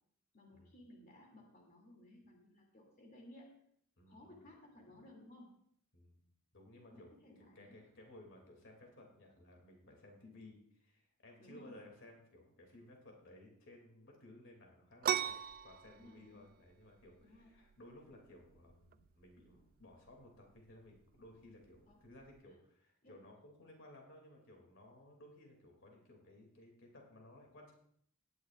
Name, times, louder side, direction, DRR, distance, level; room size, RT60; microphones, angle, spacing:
voice 1, 0.3-3.6 4.0-5.6 6.9-7.8 10.2-10.4 11.4-11.8 15.9-16.5 17.2-17.5 21.9-22.0 22.5-22.6 23.0-23.2, left 1 dB, 45° left, -1 dB, 2.7 m, -58 dB
voice 2, 4.0-4.4 5.9-6.2 6.5-7.1 7.5-15.4 15.6-27.7, left 1 dB, 60° left, 1 dB, 2.7 m, -58 dB
sound 1, 15.0-22.4, right 9 dB, 45° right, 0.4 m, -42 dB
18.0 x 11.0 x 2.5 m, 0.65 s
head